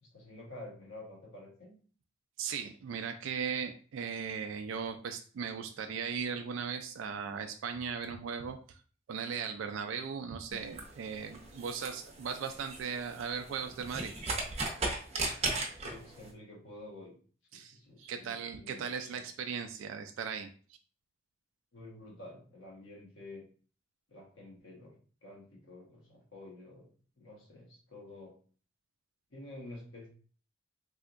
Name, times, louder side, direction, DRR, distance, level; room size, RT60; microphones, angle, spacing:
voice 1, 0.0-1.7 15.8-17.2 17.5-19.3 21.7-23.4 24.1-24.9 25.2-26.9 27.2-28.4 29.3-30.1, left 2 dB, 70° left, -3 dB, 1.2 m, -50 dB
voice 2, 2.4-8.6 9.1-14.1 17.5-20.5, right 6 dB, 70° right, 6 dB, 0.3 m, -38 dB
sound 1, 10.5-16.3, right 2 dB, 30° right, 0.6 m, -37 dB
3.4 x 2.7 x 2.4 m, 0.42 s
head